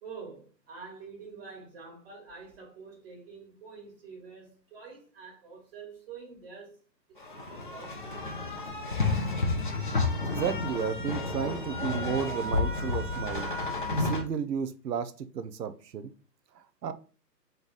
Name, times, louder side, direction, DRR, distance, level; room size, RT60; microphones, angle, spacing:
voice 1, 0.0-6.8 7.1-7.2 7.5-8.2, right 5 dB, 35° right, 1.7 m, -47 dB
sound 1, 7.2-14.2, left 3 dB, 35° left, 0.4 m, -31 dB
voice 2, 10.2-13.5 14.0-16.1 16.6-16.9, right 7 dB, 75° right, 0.7 m, -33 dB
3.9 x 3.3 x 3.9 m
figure-of-eight pair, 145°, 50 cm